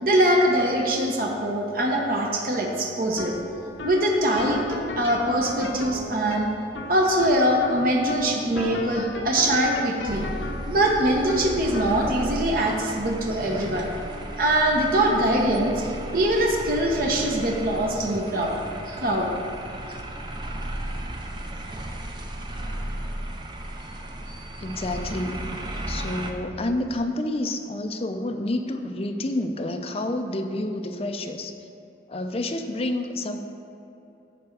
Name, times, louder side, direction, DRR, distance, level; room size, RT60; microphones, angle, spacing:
voice 1, 0.0-3.3 3.8-6.5 6.9-10.3 10.7-13.9 14.4-15.9 16.1-18.6 18.9-19.3, right 1 dB, 50° right, 0 dB, 0.9 m, -23 dB
sound 1, 3.0-20.2, left 2 dB, 90° left, 0.6 m, -39 dB
sound 2, 10.1-26.3, right 1 dB, 25° right, 0.5 m, -35 dB
voice 2, 24.6-25.4 25.9-31.5 32.1-33.4, left 1 dB, 35° left, 5 dB, 0.5 m, -29 dB
9.3 x 3.5 x 6.5 m, 2.9 s
head